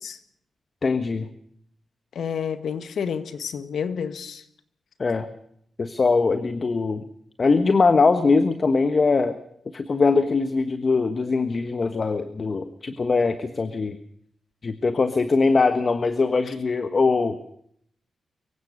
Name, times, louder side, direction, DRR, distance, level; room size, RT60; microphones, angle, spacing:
voice 1, 0.8-1.3 5.0-5.3 5.8-7.0 7.4-9.4 9.7-14.0 14.6-17.5, left 4 dB, 45° left, 1.4 m, -21 dB
voice 2, 2.1-4.4, left 7 dB, 75° left, 1.7 m, -29 dB
24.5 x 16.0 x 6.6 m
cardioid pair, 70°, 0 cm